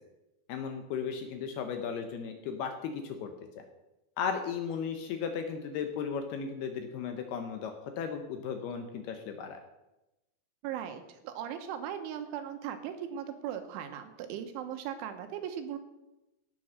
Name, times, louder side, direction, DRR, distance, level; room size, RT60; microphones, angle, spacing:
voice 1, 0.5-3.3 4.2-9.6, left 6 dB, 75° left, 5 dB, 2.5 m, -35 dB
voice 2, 10.6-15.8, right 9 dB, 85° right, 7 dB, 3.5 m, -38 dB
16.0 x 7.0 x 6.3 m, 0.98 s
omnidirectional pair, 5.4 m